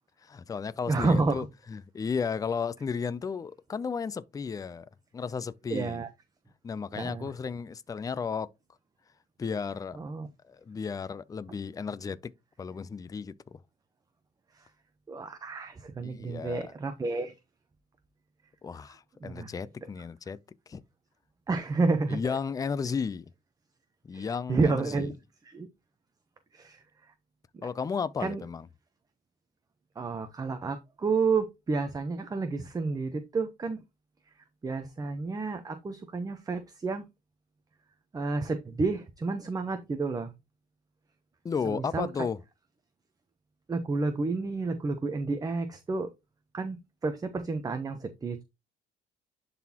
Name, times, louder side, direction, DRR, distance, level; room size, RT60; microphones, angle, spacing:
voice 1, 0.2-4.9 5.1-6.0 6.6-8.5 9.4-10.0 10.5-12.3 12.6-13.6 16.0-16.7 18.6-20.4 20.7-20.8 22.1-23.3 24.0-25.1 27.6-28.7 41.4-42.4, left 6 dB, 20° left, 0.4 m, -34 dB
voice 2, 0.9-1.5 5.7-6.1 7.0-7.3 10.0-10.3 15.1-17.3 19.2-19.5 21.5-22.4 24.1-25.1 25.4-25.7 26.5-26.8 28.2-28.4 30.0-33.8 34.6-37.0 38.1-40.3 41.6-42.1 43.7-46.1 46.5-48.4, right 3 dB, 20° right, 0.8 m, -30 dB
11.0 x 4.1 x 2.9 m
cardioid pair, 110°, 17 cm